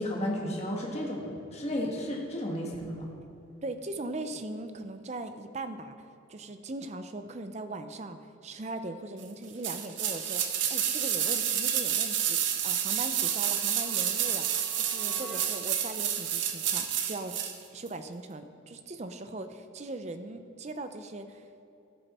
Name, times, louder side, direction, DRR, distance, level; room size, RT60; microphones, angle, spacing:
voice 1, 0.0-3.1, left 1 dB, 30° left, -2 dB, 1.4 m, -33 dB
voice 2, 3.6-17.4 17.7-21.6, right 2 dB, 35° right, 9 dB, 0.5 m, -40 dB
sound 1, 9.6-17.6 17.9-18.0, right 9 dB, 65° right, 0.8 m, -29 dB
sound 2, 13.1-15.9, right 1 dB, 5° left, 1.2 m, -49 dB
14.0 x 6.8 x 4.2 m, 2.8 s
head